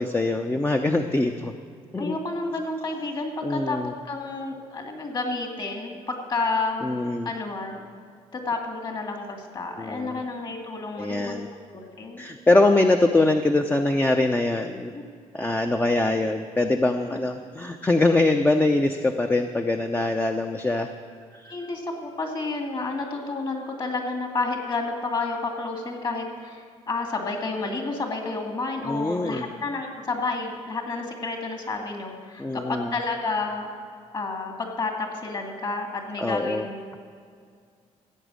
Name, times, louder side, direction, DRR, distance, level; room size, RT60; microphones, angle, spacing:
voice 1, 0.0-1.5 1.9-2.2 3.4-3.9 6.8-7.3 9.8-10.2 11.0-11.5 12.2-14.9 15.3-20.9 21.3-21.6 28.8-29.5 32.4-32.9 36.2-36.7, left 2 dB, 15° left, 5 dB, 0.6 m, -23 dB
voice 2, 2.0-3.8 4.0-7.8 8.3-11.4 11.7-12.2 14.9-15.0 17.1-17.2 21.5-33.7 34.1-36.8, left 3 dB, 35° left, 3 dB, 2.4 m, -30 dB
16.0 x 8.1 x 6.4 m, 2.2 s
cardioid pair, 105°, 13 cm